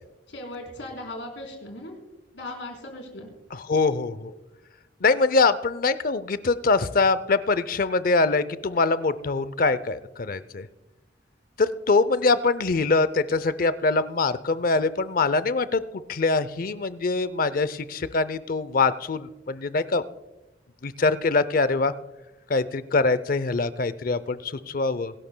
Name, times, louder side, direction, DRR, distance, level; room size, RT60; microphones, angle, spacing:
voice 1, 0.3-1.9 2.3-3.3, left 1 dB, 75° left, 2 dB, 3.8 m, -38 dB
voice 2, 3.5-4.3 5.0-10.7 11.6-20.0 20.8-21.9 22.5-25.1, left 3 dB, 50° left, 16 dB, 0.6 m, -23 dB
23.0 x 11.5 x 2.2 m, 1.0 s
head